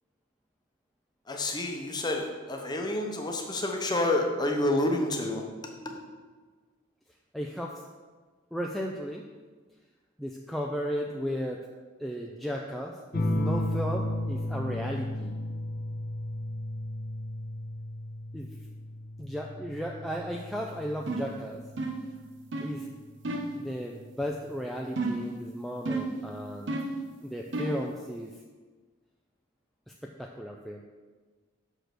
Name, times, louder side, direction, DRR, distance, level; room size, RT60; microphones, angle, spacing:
voice 1, 1.3-5.5 5.8-5.9, left 1 dB, 20° left, 2 dB, 0.8 m, -29 dB
voice 2, 7.3-7.8 8.5-9.2 10.2-11.7 12.0-15.3 18.3-18.5 19.2-21.6 22.6-22.9 23.5-26.7 27.2-28.3 29.9-30.8, equal, ahead, -1 dB, 0.4 m, -35 dB
sound 1, 13.1-22.2 23.7-24.2, left 1 dB, 50° left, 0.6 m, -34 dB
sound 2, 21.1-21.4 21.8-22.1 22.5-22.8 23.2-23.6 25.0-25.3 25.9-26.2 26.7-27.0 27.5-27.9, right 2 dB, 60° right, 0.8 m, -31 dB
6.5 x 5.1 x 6.0 m, 1.4 s
head